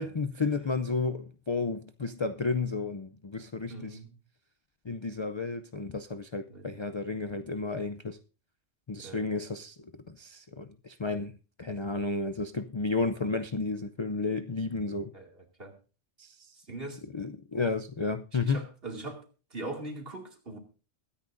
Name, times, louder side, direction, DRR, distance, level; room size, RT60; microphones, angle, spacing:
voice 1, 0.0-4.0 4.8-8.2 8.9-15.1 16.2-16.5 17.1-18.7, left 4 dB, 40° left, 0.4 m, -32 dB
voice 2, 3.7-4.1 6.5-6.7 9.0-9.3 15.1-15.3 15.6-15.7 16.7-17.0 18.4-19.2 19.5-20.6, right 2 dB, 50° right, 2.7 m, -40 dB
22.0 x 9.9 x 2.6 m
omnidirectional pair, 1.3 m